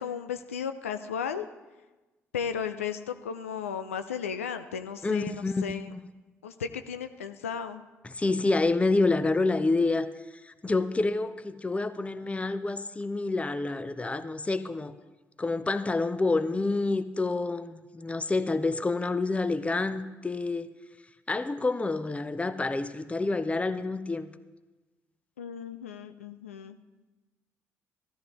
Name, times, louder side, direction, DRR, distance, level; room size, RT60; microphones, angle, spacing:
voice 1, 0.0-1.5 2.3-5.9 6.4-7.8 25.4-26.8, left 7 dB, 80° left, 9 dB, 0.4 m, -35 dB
voice 2, 5.0-5.6 8.0-10.1 10.4-14.9 15.4-20.7 21.3-24.3, left 3 dB, 15° left, 12 dB, 0.7 m, -28 dB
17.0 x 13.5 x 3.1 m, 1.1 s
figure-of-eight pair, 45°, 7 cm